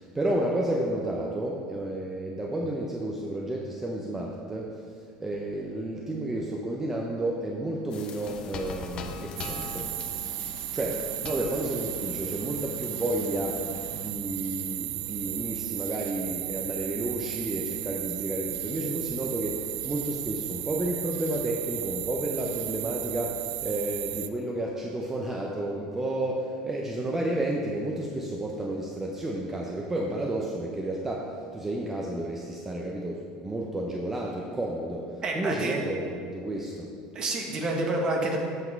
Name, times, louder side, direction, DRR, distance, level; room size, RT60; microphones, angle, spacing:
voice 1, 0.0-4.8 5.2-9.9 10.7-36.9, right 1 dB, 15° right, -2 dB, 0.8 m, -31 dB
sound 1, 7.9-14.1, left 5 dB, 45° left, 0.9 m, -41 dB
sound 2, 9.4-24.3, right 15 dB, 70° right, 0.4 m, -35 dB
voice 2, 35.2-35.8 37.1-38.4, right 2 dB, 35° right, 1 dB, 1.5 m, -28 dB
8.2 x 5.9 x 4.6 m, 2.2 s
supercardioid pair, 100°, 2 cm